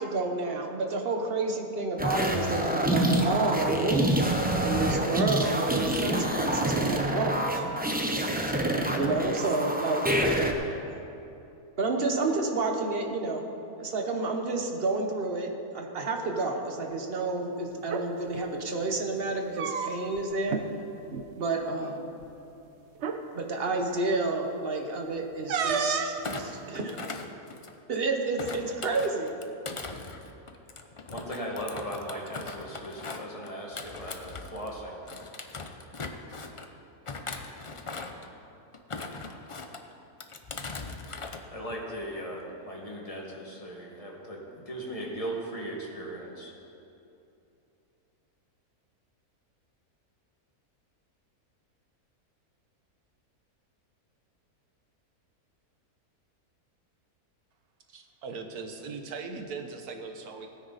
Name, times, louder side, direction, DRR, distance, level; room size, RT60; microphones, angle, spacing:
voice 1, 0.0-4.1 4.6-7.7 9.0-10.4 11.8-13.5 13.8-20.6 21.4-22.1 23.3-27.0 27.9-29.3, right 3 dB, 40° right, 3 dB, 1.2 m, -30 dB
sound 1, 2.0-10.5, right 1 dB, 10° right, 0.6 m, -27 dB
sound 2, 17.8-18.1 19.3-20.2 20.5-20.7 21.0-21.3 22.2-22.3 23.0-23.2 25.5-26.2, right 6 dB, 60° right, 0.9 m, -30 dB
Thump thud, 26.2-27.9 28.4-34.7 35.1-36.7 37.1-38.3 38.7-39.8 40.2-41.4 41.7-42.0, left 3 dB, 50° left, 0.3 m, -40 dB
voice 2, 31.1-35.0 41.5-46.5, equal, 25° left, -2 dB, 1.9 m, -38 dB
voice 3, 57.9-60.5, right 4 dB, 80° right, 5 dB, 1.5 m, -39 dB
17.0 x 9.8 x 4.1 m, 2.8 s
omnidirectional pair, 1.6 m